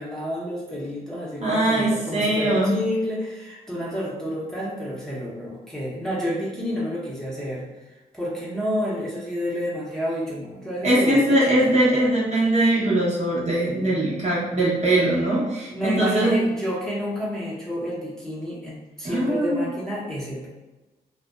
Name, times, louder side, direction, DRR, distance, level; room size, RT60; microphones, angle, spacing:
voice 1, 0.0-11.2 11.5-11.7 15.7-20.5, equal, 5° left, -8 dB, 1.0 m, -30 dB
voice 2, 1.4-2.7 10.8-16.4 19.0-19.7, right 1 dB, 40° right, -7 dB, 1.1 m, -21 dB
2.4 x 2.2 x 2.2 m, 1.1 s
hypercardioid pair, 40°, 18 cm